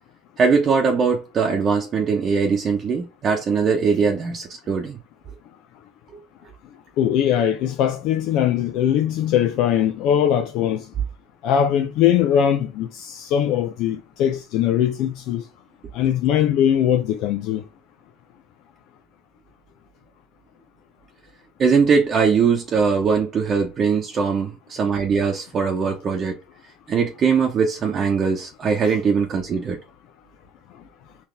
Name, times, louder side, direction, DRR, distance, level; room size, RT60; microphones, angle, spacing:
voice 1, 0.4-5.0 21.6-26.4 26.9-29.8, right 5 dB, 40° right, 0.8 m, -21 dB
voice 2, 7.0-10.8 11.4-15.4 15.9-17.6, left 9 dB, 60° left, 0.5 m, -21 dB
3.8 x 2.7 x 3.3 m
hypercardioid pair, 80°, 0 cm